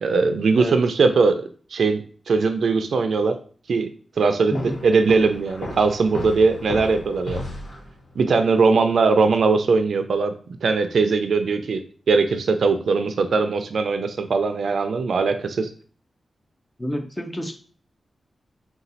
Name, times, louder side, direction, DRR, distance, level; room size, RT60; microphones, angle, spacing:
voice 1, 0.0-3.4 3.7-3.9 4.2-4.5 4.8-7.4 8.2-10.3 10.6-15.7, right 4 dB, 75° right, 8 dB, 0.4 m, -20 dB
sound 1, 4.5-8.2, left 2 dB, 70° left, 1.2 m, -34 dB
voice 2, 16.8-17.5, left 1 dB, 15° left, 4 dB, 0.6 m, -28 dB
4.1 x 2.3 x 4.0 m, 0.41 s
wide cardioid pair, 140°, 0 cm